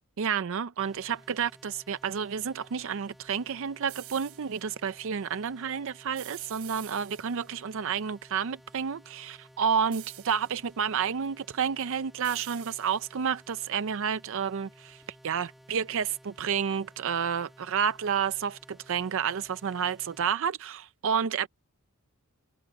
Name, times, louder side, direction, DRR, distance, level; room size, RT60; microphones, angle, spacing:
voice 1, 0.2-21.5, right 7 dB, 65° right, 0.5 m, -30 dB
sound 1, 0.8-20.4, equal, ahead, 1.7 m, -56 dB
sound 2, 3.9-4.6 6.2-7.6 9.9-10.7 12.2-13.3, right 16 dB, 85° right, 4.7 m, -47 dB
head